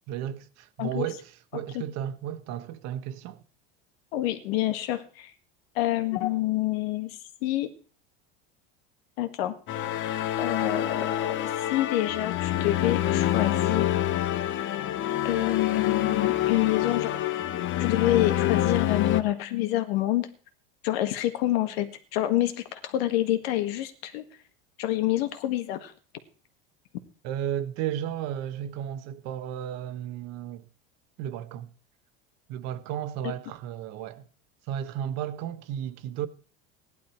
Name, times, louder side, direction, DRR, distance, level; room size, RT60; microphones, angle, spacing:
voice 1, 0.1-3.4 27.2-30.6 31.2-31.7 32.5-34.2 34.7-36.3, right 10 dB, 60° right, 1.3 m, -34 dB
voice 2, 1.5-1.8 4.1-5.3 5.8-7.7 9.2-9.6 10.4-14.0 15.2-17.2 17.8-20.3 20.8-24.2 24.8-25.9 33.2-33.3, left 14 dB, 80° left, 1.7 m, -27 dB
sound 1, 9.7-19.2, left 12 dB, 40° left, 1.0 m, -27 dB
16.0 x 11.0 x 4.5 m
supercardioid pair, 130°, 30 cm